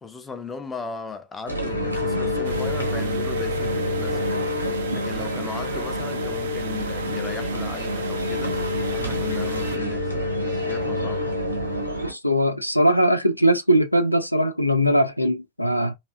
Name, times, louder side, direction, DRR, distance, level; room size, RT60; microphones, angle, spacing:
voice 1, 0.0-11.4, left 5 dB, 15° left, 0.5 m, -37 dB
sound 1, 1.5-12.1, left 1 dB, 85° right, 0.8 m, -27 dB
sound 2, 2.4-9.8, right 7 dB, 60° right, 0.4 m, -39 dB
voice 2, 12.0-15.9, equal, 90° left, 0.3 m, -20 dB
2.6 x 2.3 x 2.3 m
figure-of-eight pair, 90°, 0 cm